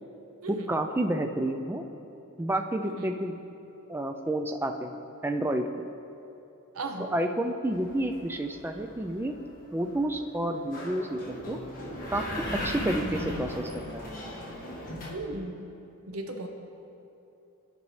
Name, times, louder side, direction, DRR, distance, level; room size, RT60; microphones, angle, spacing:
voice 1, 0.5-1.8 2.4-3.4 3.9-4.9 5.2-5.9 7.1-9.4 9.7-11.6 12.1-12.2 12.5-14.1, right 1 dB, 10° right, 5 dB, 0.3 m, -30 dB
voice 2, 2.8-3.2 6.7-7.1 15.1-15.7 16.1-16.5, right 2 dB, 75° right, 4 dB, 0.7 m, -36 dB
sound 1, 7.7-15.1, left 1 dB, 40° left, 1.5 m, -37 dB
12.5 x 5.3 x 3.2 m, 2.9 s
head